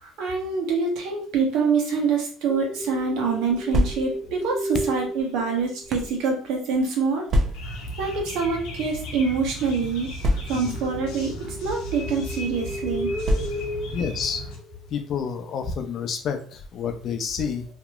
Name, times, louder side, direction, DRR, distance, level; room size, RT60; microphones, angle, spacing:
voice 1, 0.0-7.3 8.0-10.1 10.5-13.1, right 4 dB, 75° right, 1 dB, 0.9 m, -25 dB
sound 1, 2.5-6.2 10.6-15.1, equal, 5° left, 0.6 m, -34 dB
sound 2, 3.6-4.4 5.2-6.2 7.3-7.9 8.8-8.9 9.2-9.3 10.2-10.9 11.7-12.0 13.2-13.9, equal, 50° right, 0.6 m, -26 dB
sound 3, 7.5-14.6, equal, 85° left, 0.8 m, -36 dB
voice 2, 13.9-14.4 14.9-17.7, left 6 dB, 55° left, 6 dB, 0.5 m, -29 dB
2.9 x 2.7 x 2.3 m, 0.42 s
supercardioid pair, 90°, 0 cm